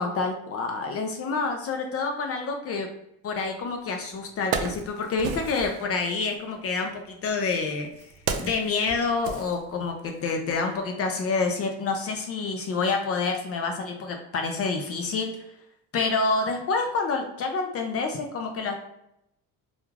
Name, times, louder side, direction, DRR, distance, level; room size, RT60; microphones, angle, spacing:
voice 1, 0.0-2.9 3.2-7.9 8.4-15.4 15.9-18.7, left 4 dB, 40° left, 3 dB, 0.4 m, -28 dB
Wood, 3.7-3.8 4.2-5.8 6.8-10.1 10.5-10.6, right 6 dB, 70° right, 0.5 m, -34 dB
2.4 x 2.2 x 3.1 m, 0.79 s
cardioid pair, 115°, 37 cm